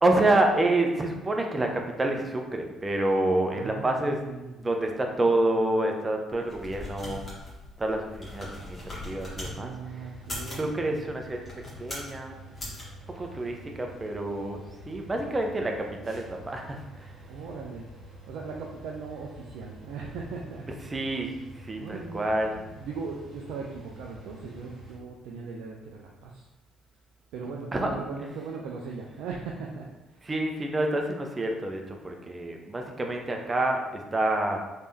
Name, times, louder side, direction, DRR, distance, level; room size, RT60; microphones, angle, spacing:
voice 1, 0.0-4.2 4.6-7.3 7.8-10.1 10.6-11.4 11.8-12.4 13.1-17.1 20.9-22.6 27.7-28.0 30.2-34.6, right 2 dB, 25° right, 3 dB, 0.6 m, -28 dB
voice 2, 3.5-4.6 9.5-11.0 13.1-13.3 17.2-17.9 18.3-20.7 21.8-26.5 27.3-30.2, right 4 dB, 70° right, -1 dB, 0.3 m, -39 dB
sound 1, 6.3-9.5 10.1-10.7 11.4-12.2 12.6-12.8, left 1 dB, 35° left, 1.4 m, -39 dB
sound 2, 9.4-25.0, right 1 dB, 45° right, 1.2 m, -48 dB
3.4 x 3.3 x 2.7 m, 1.1 s
hypercardioid pair, 50°, 0 cm